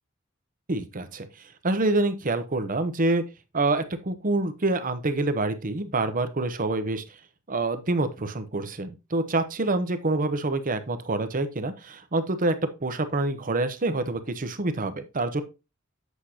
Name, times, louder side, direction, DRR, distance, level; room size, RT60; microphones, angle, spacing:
voice 1, 0.7-1.3 1.6-3.2 3.5-7.0 7.5-12.6 12.8-15.4, right 2 dB, 40° right, 10 dB, 0.9 m, -26 dB
8.2 x 6.5 x 2.8 m, 0.27 s
head